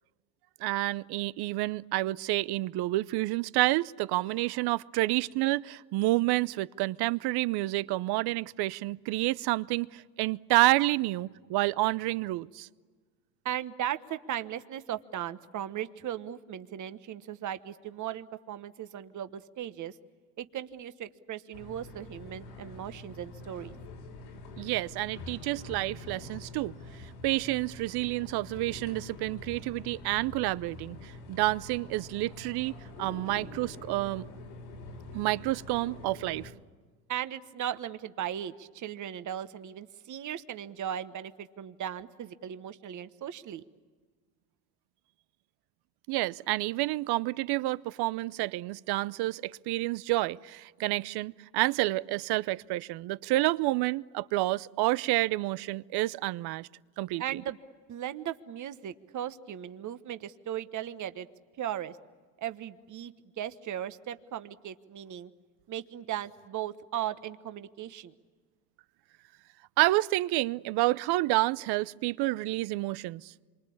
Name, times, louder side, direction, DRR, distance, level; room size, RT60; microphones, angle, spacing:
voice 1, 0.6-12.7 24.6-26.7 27.2-32.7 33.0-34.2 35.1-36.5 46.1-56.7 57.0-57.2 69.8-73.3, right 19 dB, 55° right, 0.7 m, -29 dB
voice 2, 13.4-19.9 20.4-23.7 37.1-43.6 57.2-57.6 57.9-61.3 61.6-62.0 62.4-65.3 65.7-68.1, right 11 dB, 40° right, 1.3 m, -37 dB
sound 1, 21.5-36.5, left 2 dB, 85° left, 5.8 m, -45 dB
27.0 x 24.5 x 8.6 m
supercardioid pair, 95°, 48 cm